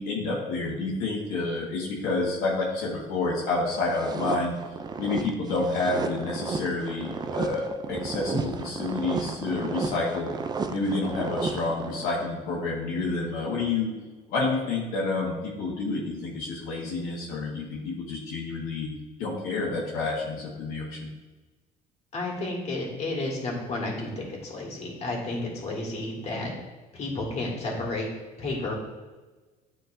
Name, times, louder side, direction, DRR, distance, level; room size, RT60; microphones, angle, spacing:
voice 1, 0.0-4.5 5.0-10.3 10.7-13.9 14.3-18.9 19.2-21.1, left 3 dB, 80° left, -5 dB, 1.4 m, -29 dB
sound 1, 3.7-12.3, right 4 dB, 25° right, 0.4 m, -33 dB
voice 2, 22.1-26.5 26.9-28.1 28.4-28.7, left 2 dB, 45° left, -2 dB, 2.0 m, -31 dB
9.5 x 3.7 x 2.7 m, 1.2 s
cardioid pair, 105°, 15 cm